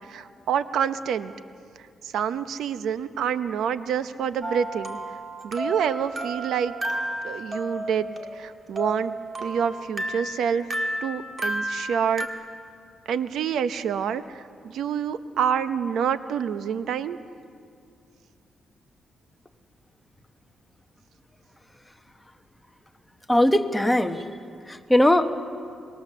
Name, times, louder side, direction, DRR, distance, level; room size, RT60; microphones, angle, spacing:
voice 1, 0.1-1.3 2.0-5.0 5.4-6.7 7.2-9.1 9.4-10.7 11.0-12.3 13.1-17.2, right 8 dB, 85° right, 12 dB, 0.7 m, -27 dB
sound 1, 4.4-12.3, right 1 dB, 30° right, 1.7 m, -32 dB
voice 2, 23.3-24.2 24.7-25.3, left 1 dB, 5° left, 6 dB, 1.1 m, -20 dB
25.0 x 21.0 x 6.8 m, 2.3 s
cardioid pair, 130°, 0 cm